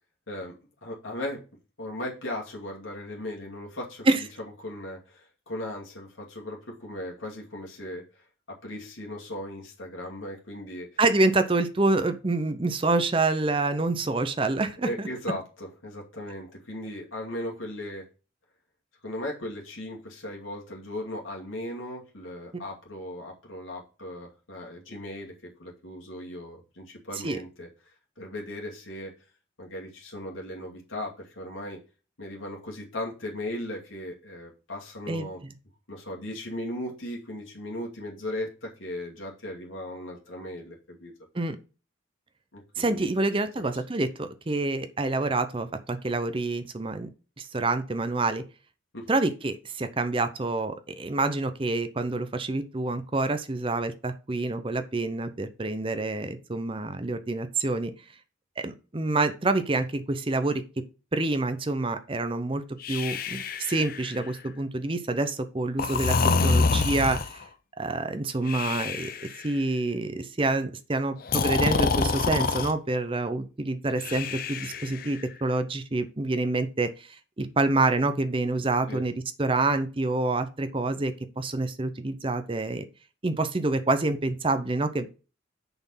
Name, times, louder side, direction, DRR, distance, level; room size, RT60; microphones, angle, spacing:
voice 1, 0.8-1.4 1.8-4.1 4.6-8.0 8.5-10.9 14.8-18.0 19.0-27.7 28.2-29.1 29.6-31.8 32.2-35.4 35.9-41.1 42.5-43.1 43.6-43.7 48.9-49.1 78.9-79.0, left 1 dB, 80° left, -1 dB, 2.3 m, -37 dB
voice 2, 11.0-15.1 27.1-27.4 35.1-35.5 41.3-41.6 42.8-47.1 47.4-48.4 49.1-57.9 58.6-60.6 61.1-66.2 66.4-67.4 67.8-79.1 79.4-82.9 83.2-85.1, right 2 dB, 25° right, 10 dB, 0.6 m, -27 dB
Breathing, 62.8-64.4 65.8-67.4 68.5-69.4 71.2-72.7 74.0-75.2, left 4 dB, 45° left, 0.6 m, -26 dB
6.8 x 4.3 x 5.6 m, 0.33 s
head